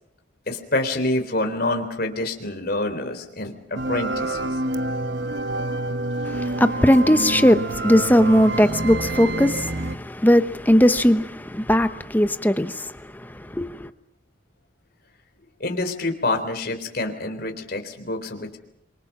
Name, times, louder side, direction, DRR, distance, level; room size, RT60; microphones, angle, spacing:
voice 1, 0.5-4.5 15.6-18.6, left 2 dB, 50° left, 3.7 m, -27 dB
sound 1, 3.8-10.0, right 2 dB, 60° right, 1.0 m, -27 dB
voice 2, 6.3-12.9 13.5-13.9, equal, 10° left, 0.9 m, -18 dB
26.5 x 24.5 x 6.1 m
head